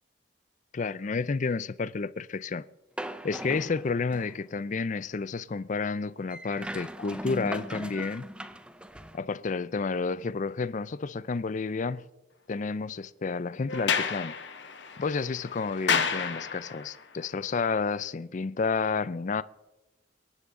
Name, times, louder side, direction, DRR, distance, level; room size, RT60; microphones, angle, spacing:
voice 1, 0.7-2.7 3.2-8.3 9.1-12.1 12.5-14.3 15.0-19.4, left 4 dB, 40° left, 0.4 m, -30 dB
sound 1, 3.0-4.5 6.3-9.2, right 1 dB, 5° right, 0.6 m, -39 dB
Sliding door, 13.7-17.0, left 6 dB, 65° left, 1.1 m, -30 dB
26.5 x 11.0 x 3.7 m
head